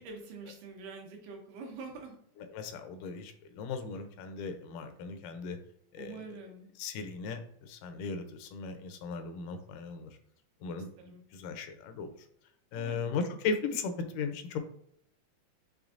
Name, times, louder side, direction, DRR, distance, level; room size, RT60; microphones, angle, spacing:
voice 1, 0.0-2.2 6.0-6.7 11.0-11.2 12.8-13.1, right 4 dB, 80° right, 2 dB, 2.4 m, -45 dB
voice 2, 2.4-5.6 5.9-6.5 6.8-10.2 10.6-12.1 12.7-14.6, left 5 dB, 85° left, 8 dB, 2.1 m, -37 dB
6.2 x 3.4 x 2.5 m, 0.68 s
omnidirectional pair, 3.7 m